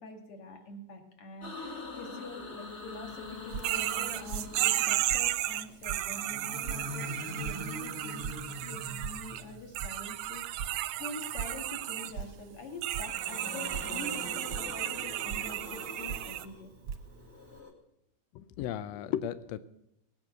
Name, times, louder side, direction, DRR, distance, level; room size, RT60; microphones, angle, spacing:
voice 1, 0.0-10.7 11.0-16.7, left 2 dB, 45° left, 3 dB, 2.9 m, -45 dB
sound 1, 1.4-5.4 6.1-9.8 11.2-12.4 12.7-17.7, left 2 dB, 25° left, 1.6 m, -44 dB
Drip, 3.1-17.6, right 6 dB, 60° right, 1.5 m, -45 dB
sound 2, 3.6-9.4 9.7-12.1 12.8-16.4, right 14 dB, 75° right, 1.8 m, -34 dB
voice 2, 18.3-19.6, left 10 dB, 90° left, 14 dB, 1.5 m, -35 dB
19.0 x 8.9 x 6.6 m, 0.85 s
omnidirectional pair, 3.8 m